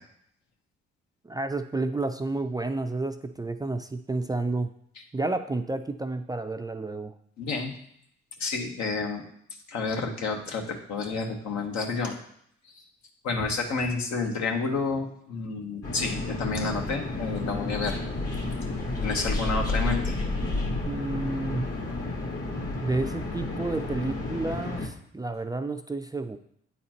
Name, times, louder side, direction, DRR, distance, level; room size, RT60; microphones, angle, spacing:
voice 1, 1.2-4.7 5.1-7.1 20.8-21.7 22.8-26.4, right 2 dB, 15° right, 7 dB, 0.4 m, -30 dB
voice 2, 7.4-7.7 8.4-9.2 9.7-12.2 13.2-18.0 19.0-20.2, left 4 dB, 70° left, 2 dB, 1.2 m, -30 dB
sound 1, 15.8-24.9, left 2 dB, 55° left, 1.7 m, -31 dB
8.9 x 4.1 x 2.9 m, 0.68 s
supercardioid pair, 60°, 29 cm